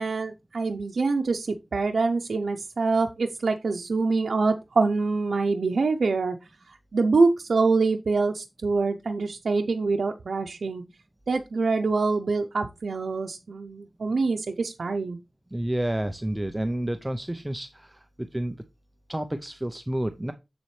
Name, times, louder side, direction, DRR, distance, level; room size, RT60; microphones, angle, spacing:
voice 1, 0.0-6.4 6.7-10.8 11.3-15.2, right 3 dB, 90° right, 3 dB, 0.6 m, -25 dB
voice 2, 15.5-18.6 19.1-20.3, right 1 dB, 15° right, 8 dB, 0.6 m, -30 dB
7.5 x 7.1 x 3.2 m, 0.24 s
wide cardioid pair, 90°, 0 cm